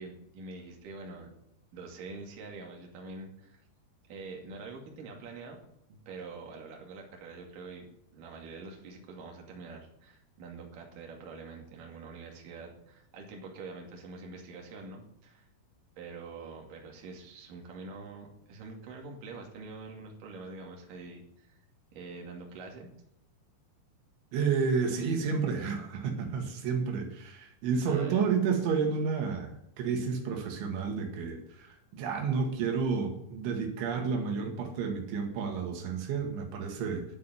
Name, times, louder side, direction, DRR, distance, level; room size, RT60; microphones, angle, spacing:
voice 1, 0.0-1.3 1.7-3.6 4.1-5.6 5.9-15.5 16.0-21.6 21.9-22.9 27.9-28.3, right 3 dB, 50° right, 1 dB, 3.6 m, -45 dB
voice 2, 24.3-37.1, right 5 dB, 90° right, 3 dB, 4.2 m, -31 dB
11.0 x 8.4 x 9.5 m, 0.80 s
omnidirectional pair, 5.2 m